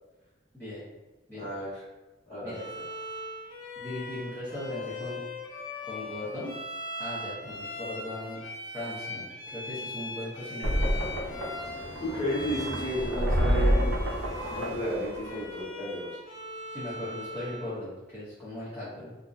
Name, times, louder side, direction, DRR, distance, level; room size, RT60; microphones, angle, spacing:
voice 1, 0.5-0.9 1.3-1.5 2.4-2.8 3.8-5.2 5.9-6.5 7.0-8.4 8.7-11.0 16.7-19.2, left 1 dB, 10° left, -13 dB, 0.6 m, -38 dB
voice 2, 1.3-1.8 2.3-2.6 12.0-14.0 14.5-16.2, equal, 30° left, -11 dB, 1.3 m, -33 dB
Bowed string instrument, 2.5-17.7, left 1 dB, 70° left, 0.7 m, -40 dB
sound 1, 10.6-15.6, equal, 80° right, 0.5 m, -28 dB
2.6 x 2.0 x 2.4 m, 1.1 s
head